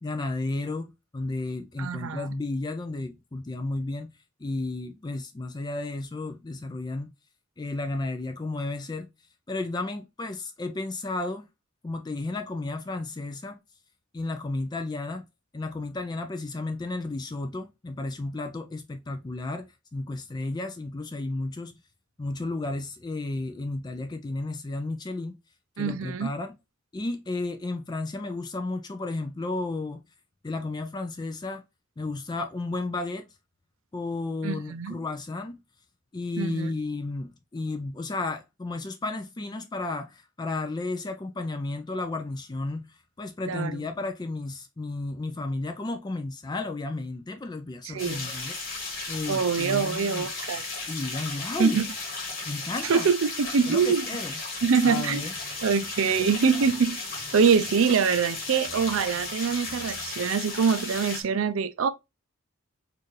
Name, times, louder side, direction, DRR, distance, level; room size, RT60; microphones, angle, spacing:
voice 1, 0.0-4.1 4.4-7.1 7.6-9.1 9.5-11.5 11.8-13.6 14.1-15.2 15.5-21.8 22.2-25.4 25.8-26.6 26.9-30.0 30.4-31.6 32.0-33.3 33.9-35.6 36.1-42.9 43.2-48.8 49.1-50.3 50.9-51.8 52.4-53.1 53.7-54.3 54.8-55.3, left 2 dB, 20° left, 0.4 m, -33 dB
voice 2, 1.8-2.3 25.8-26.3 34.4-35.0 36.4-36.7 43.5-43.9 47.8-48.3 49.3-50.6 51.6-51.9 52.8-54.1 54.6-55.3 55.6-57.0 57.3-61.9, right 6 dB, 75° right, 0.4 m, -24 dB
sound 1, 48.0-61.2, left 3 dB, 45° left, 1.6 m, -35 dB
sound 2, 55.1-60.2 60.7-61.0, right 1 dB, 20° right, 1.3 m, -53 dB
4.4 x 2.5 x 3.1 m
head